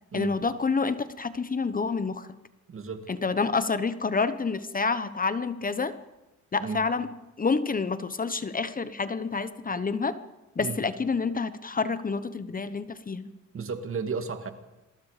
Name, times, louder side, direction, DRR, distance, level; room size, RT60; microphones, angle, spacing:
voice 1, 0.1-2.3 3.1-5.9 6.5-7.1 7.4-10.1 10.6-13.3, left 4 dB, 30° left, 13 dB, 1.1 m, -28 dB
voice 2, 2.7-3.1 6.6-6.8 10.6-10.8 13.5-14.5, right 5 dB, 45° right, 8 dB, 2.3 m, -33 dB
27.5 x 22.0 x 5.1 m, 1.0 s
cardioid pair, 90°, 30 cm